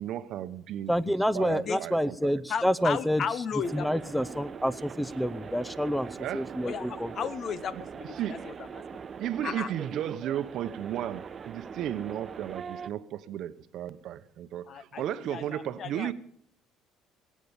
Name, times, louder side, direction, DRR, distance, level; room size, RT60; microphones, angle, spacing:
voice 1, 0.0-2.4 6.2-6.5 7.7-7.8 8.2-8.4 9.2-16.1, right 11 dB, 65° right, 13 dB, 0.9 m, -34 dB
voice 2, 0.9-3.2 3.7-7.1, equal, 5° left, 18 dB, 0.7 m, -28 dB
voice 3, 2.5-3.9 6.6-9.0 9.4-9.7 14.7-16.1, left 6 dB, 50° left, 16 dB, 0.9 m, -35 dB
sound 1, 3.6-12.9, right 6 dB, 40° right, 0.6 m, -42 dB
19.0 x 8.5 x 7.0 m, 0.63 s
supercardioid pair, 95°, 0 cm